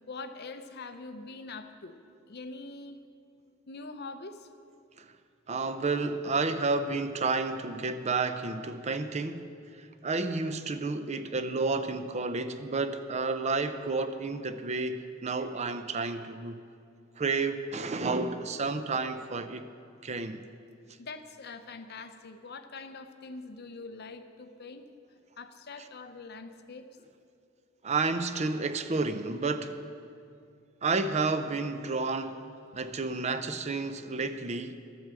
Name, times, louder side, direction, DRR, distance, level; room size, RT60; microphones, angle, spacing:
voice 1, 0.1-2.0 2.3-3.0 3.7-4.5 21.0-24.9 25.4-26.9, left 3 dB, 50° left, 0.7 m, -43 dB
voice 2, 5.5-9.5 9.8-16.6 17.2-19.6 20.0-20.4 27.8-29.7 30.8-32.4 32.7-34.8, right 3 dB, 35° right, 0.6 m, -31 dB
12.5 x 8.0 x 7.6 m
head